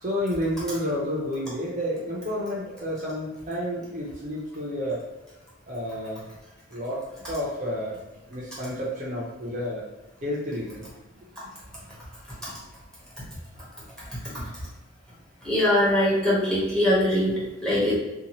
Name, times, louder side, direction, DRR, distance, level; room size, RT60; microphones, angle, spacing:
voice 1, 0.0-5.0 5.7-6.2 6.7-8.0 8.3-9.9 10.2-10.9 11.4-12.0 12.4-12.8, equal, 40° right, -4 dB, 0.5 m, -31 dB
voice 2, 15.4-18.0, left 1 dB, 5° left, -7 dB, 0.9 m, -22 dB
2.7 x 2.3 x 2.9 m, 1.1 s
head